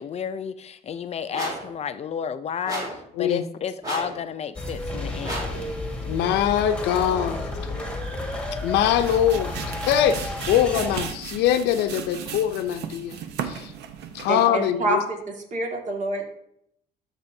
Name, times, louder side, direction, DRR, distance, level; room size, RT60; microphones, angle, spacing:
voice 1, 0.0-5.5, left 7 dB, 40° left, 0.5 m, -32 dB
sound 1, 1.3-1.7 2.6-3.0 3.8-4.2 5.2-5.6, right 1 dB, 20° right, 3.4 m, -32 dB
sound 2, 4.6-11.1, left 2 dB, 5° left, 1.7 m, -32 dB
voice 2, 6.1-7.5 8.6-9.6 9.9-13.2 13.4-13.7 14.1-15.0, left 10 dB, 85° left, 0.6 m, -23 dB
sound 3, 8.7-14.5, right 8 dB, 80° right, 0.9 m, -36 dB
voice 3, 14.3-16.2, right 2 dB, 45° right, 2.0 m, -27 dB
13.0 x 6.1 x 2.7 m
cardioid pair, 110°, 17 cm